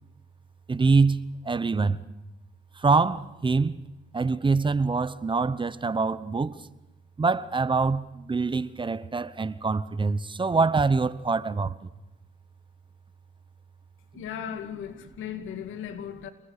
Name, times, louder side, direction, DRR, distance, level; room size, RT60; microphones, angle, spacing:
voice 1, 0.7-2.0 2.8-3.7 4.1-6.7 7.2-11.9 14.1-14.2, right 4 dB, 25° right, 0.9 m, -25 dB
voice 2, 14.1-16.3, left 9 dB, 85° left, 2.4 m, -37 dB
28.5 x 20.0 x 6.7 m
cardioid pair, 90°, 20 cm